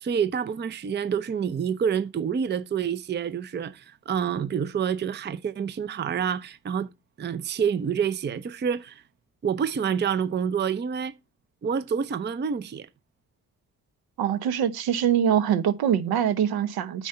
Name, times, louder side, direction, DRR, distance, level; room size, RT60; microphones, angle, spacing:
voice 1, 0.0-6.9 7.2-9.0 9.4-11.1 11.6-12.9, right 7 dB, 25° right, 0.6 m, -27 dB
voice 2, 14.2-17.1, right 9 dB, 60° right, 0.9 m, -24 dB
9.1 x 4.4 x 5.5 m
hypercardioid pair, 45°, 42 cm